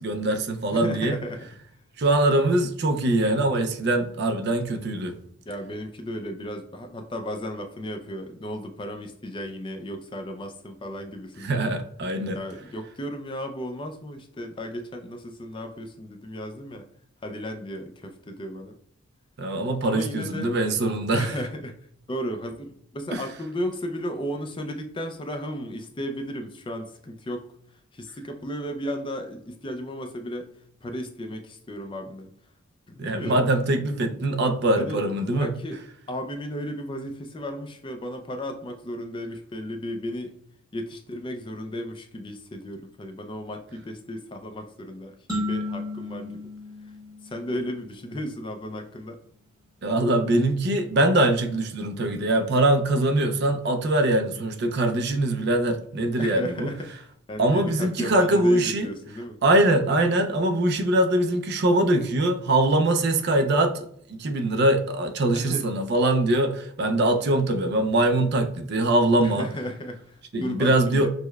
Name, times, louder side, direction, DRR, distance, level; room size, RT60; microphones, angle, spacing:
voice 1, 0.0-1.1 2.0-5.1 11.4-12.4 19.4-21.3 23.1-23.2 33.0-35.5 49.8-56.7 57.4-58.9 59.4-69.5 70.3-71.1, right 1 dB, 50° right, 0.4 m, -23 dB
voice 2, 0.7-1.5 5.5-11.6 12.3-16.9 17.2-18.8 19.8-20.5 21.2-21.8 22.1-27.5 27.9-30.5 30.8-32.3 32.9-33.5 34.8-35.0 35.4-35.8 36.1-40.3 40.7-46.5 47.2-49.2 56.2-56.9 57.3-59.4 65.3-65.7 69.2-71.1, equal, 20° left, 0.3 m, -34 dB
sound 1, 45.3-47.9, left 2 dB, 15° right, 1.0 m, -33 dB
6.3 x 2.1 x 2.3 m
head